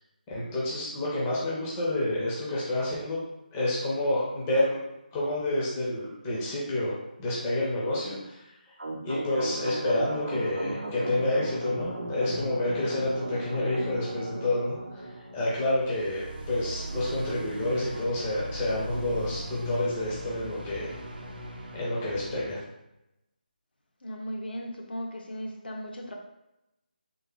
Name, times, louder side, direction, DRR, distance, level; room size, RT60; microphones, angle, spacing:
voice 1, 0.3-3.2 3.5-4.8 5.1-8.4 9.0-14.8 15.3-20.9 21.7-22.6, left 1 dB, 10° left, -7 dB, 0.5 m, -29 dB
sound 1, 8.8-22.5, right 1 dB, 75° right, 0.6 m, -37 dB
voice 2, 24.0-26.1, equal, 85° left, 1 dB, 0.7 m, -37 dB
3.4 x 2.0 x 3.4 m, 0.89 s
figure-of-eight pair, 170°, 5 cm